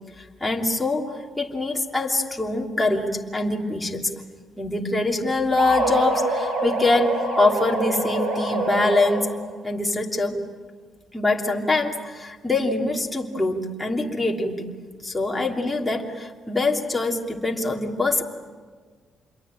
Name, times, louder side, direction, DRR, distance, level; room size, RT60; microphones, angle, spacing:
voice 1, 0.4-4.1 4.6-9.3 9.6-10.4 11.1-14.6 15.0-18.2, left 2 dB, 10° left, -1 dB, 3.1 m, -24 dB
sound 1, 5.6-9.5, right 2 dB, 75° right, 5.6 m, -26 dB
27.5 x 22.5 x 9.0 m, 1.5 s
cardioid pair, 90°, 0 cm